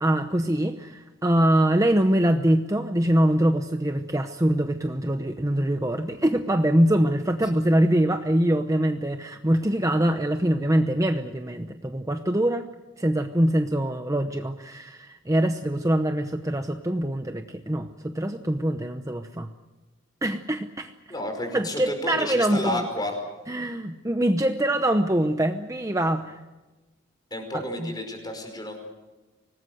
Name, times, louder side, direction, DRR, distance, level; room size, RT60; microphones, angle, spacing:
voice 1, 0.0-12.7 13.0-19.5 20.2-20.9 21.5-22.8 23.5-26.4 27.5-27.9, right 1 dB, 15° right, 7 dB, 0.9 m, -24 dB
voice 2, 21.1-23.2 27.3-28.8, left 1 dB, 20° left, 4 dB, 5.4 m, -31 dB
25.5 x 19.5 x 7.9 m, 1.1 s
head